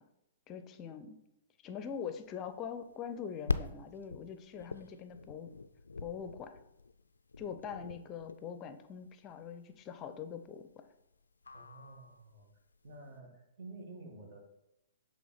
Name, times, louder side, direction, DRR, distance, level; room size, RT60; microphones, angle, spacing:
voice 1, 0.5-1.2 1.6-5.5 6.0-6.5 7.4-10.8, left 7 dB, 30° left, 9 dB, 0.5 m, -43 dB
sound 1, 2.0-13.1, left 4 dB, 80° left, 0.3 m, -43 dB
voice 2, 11.5-12.5 12.8-14.4, right 2 dB, 55° right, 1 dB, 1.7 m, -50 dB
7.5 x 3.4 x 4.1 m, 0.83 s
figure-of-eight pair, 115°, 0 cm